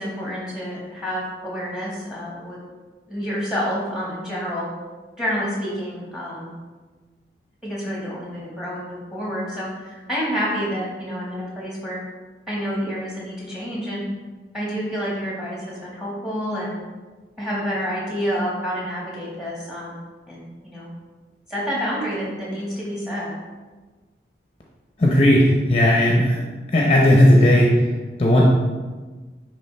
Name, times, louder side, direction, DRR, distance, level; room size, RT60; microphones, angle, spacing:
voice 1, 0.0-2.6 3.1-4.7 5.2-6.5 7.6-12.0 12.5-14.0 14.5-16.7 17.4-20.0 20.3-20.9 21.5-23.3, equal, 5° right, -5 dB, 1.7 m, -28 dB
voice 2, 25.0-26.4 26.7-27.9 28.2-28.4, left 1 dB, 35° left, -2 dB, 0.7 m, -15 dB
9.7 x 3.4 x 3.3 m, 1.3 s
head